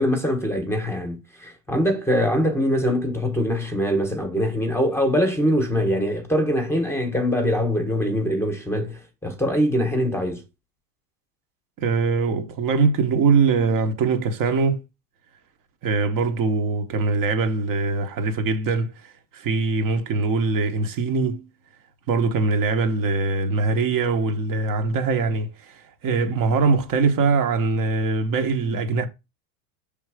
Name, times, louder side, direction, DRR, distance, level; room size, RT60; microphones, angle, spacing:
voice 1, 0.0-10.4, equal, 5° left, 1.1 m, -23 dB
voice 2, 11.8-14.8 15.8-21.5 22.1-29.1, right 4 dB, 40° right, 1.2 m, -22 dB
5.6 x 3.5 x 4.9 m
supercardioid pair, 140°, 47 cm